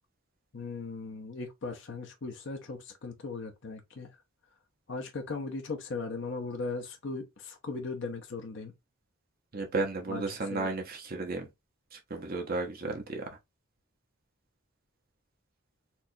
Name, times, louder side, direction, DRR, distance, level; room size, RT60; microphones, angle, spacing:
voice 1, 0.5-4.1 4.9-8.7 10.1-10.2 10.5-10.7, left 3 dB, 60° left, 0.7 m, -38 dB
voice 2, 9.5-11.5 11.9-13.3, right 3 dB, 45° right, 0.9 m, -33 dB
4.4 x 2.4 x 2.7 m
head